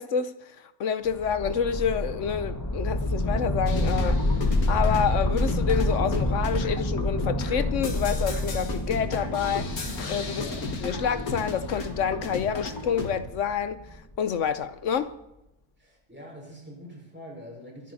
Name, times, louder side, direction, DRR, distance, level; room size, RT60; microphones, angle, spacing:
voice 1, 0.0-10.5 10.8-13.8 14.2-15.1, left 7 dB, 60° left, 1.0 m, -28 dB
sound 1, 1.1-14.2, left 1 dB, 15° left, 1.2 m, -28 dB
sound 2, 3.7-13.1, left 3 dB, 75° left, 2.2 m, -36 dB
voice 2, 10.3-10.6 15.8-17.9, equal, 5° right, 5.1 m, -44 dB
24.0 x 11.5 x 4.1 m
omnidirectional pair, 1.6 m